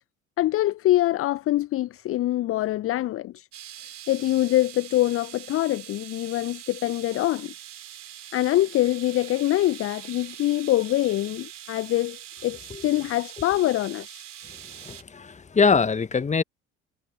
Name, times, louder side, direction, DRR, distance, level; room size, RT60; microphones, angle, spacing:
voice 1, 0.4-3.5 4.1-7.5 8.3-14.2, left 15 dB, 35° left, 0.8 m, -24 dB
sound 1, 3.5-15.0, right 11 dB, 75° right, 4.2 m, -43 dB
voice 2, 14.8-16.4, left 5 dB, 20° left, 1.5 m, -23 dB
figure-of-eight pair, 60°, 37 cm